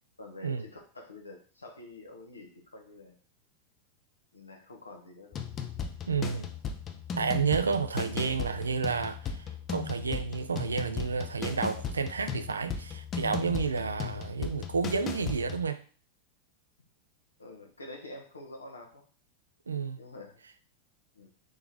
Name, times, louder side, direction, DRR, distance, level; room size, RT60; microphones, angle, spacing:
voice 1, 0.2-3.2 4.3-5.4 8.0-8.4 17.4-19.0 20.0-20.4 21.1-21.3, left 2 dB, 80° left, 0.9 m, -47 dB
sound 1, 5.3-15.7, left 6 dB, 30° left, 0.5 m, -37 dB
voice 2, 6.1-6.5 7.2-15.8 19.7-20.0, right 5 dB, 75° right, 0.4 m, -30 dB
3.9 x 3.3 x 3.8 m
figure-of-eight pair, 90°, 0 cm